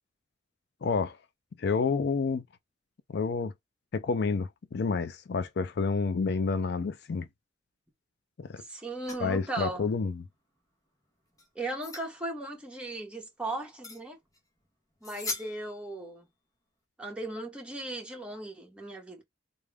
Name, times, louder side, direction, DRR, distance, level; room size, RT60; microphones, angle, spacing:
voice 1, 0.8-1.2 1.6-2.4 3.1-3.5 3.9-7.3 8.4-8.6 9.2-10.2, left 4 dB, 60° left, 0.4 m, -29 dB
voice 2, 8.6-9.9 11.5-14.2 15.0-16.3 17.0-19.2, right 2 dB, 5° right, 1.3 m, -37 dB
sound 1, 9.0-9.3 11.3-12.1 13.8-14.0 14.3-14.4 15.0-15.9, left 3 dB, 20° left, 1.1 m, -39 dB
3.7 x 2.2 x 3.4 m
head